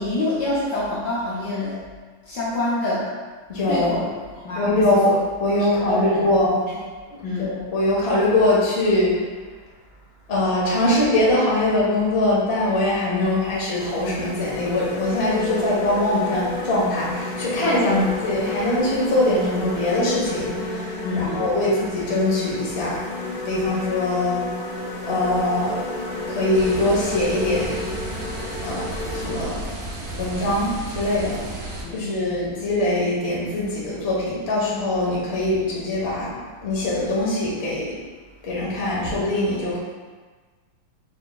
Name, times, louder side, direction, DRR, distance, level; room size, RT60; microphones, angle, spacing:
voice 1, 0.0-1.8 2.3-3.1 3.7-4.1 4.4-5.2 5.6-6.3 6.7-6.8 7.2-7.6 13.2-13.3 17.8-18.2 21.0-21.5 24.1-24.3 31.8-32.1, left 2 dB, 65° left, -7 dB, 1.2 m, -26 dB
voice 2, 3.5-4.0 4.5-6.6 7.4-9.1 10.3-18.0 18.2-23.0 23.4-24.5 25.0-25.9 26.3-27.8 28.6-29.7 30.2-31.4 31.9-38.0 38.4-39.8, left 1 dB, 40° left, -6 dB, 1.0 m, -22 dB
sound 1, 13.2-29.4, left 2 dB, 90° left, 1.6 m, -32 dB
sound 2, 26.5-31.8, right 2 dB, 70° right, 0.6 m, -33 dB
4.6 x 4.1 x 2.2 m, 1.4 s
omnidirectional pair, 2.3 m